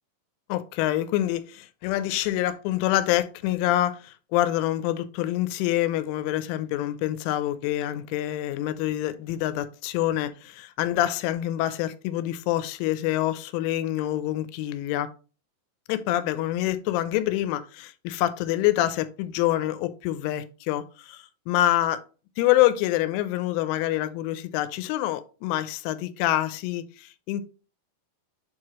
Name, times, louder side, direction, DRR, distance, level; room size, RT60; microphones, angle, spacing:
voice 1, 0.5-15.1 15.9-22.0 22.4-27.4, left 14 dB, 90° left, 3.1 m, -26 dB
7.8 x 4.8 x 3.0 m
omnidirectional pair, 5.5 m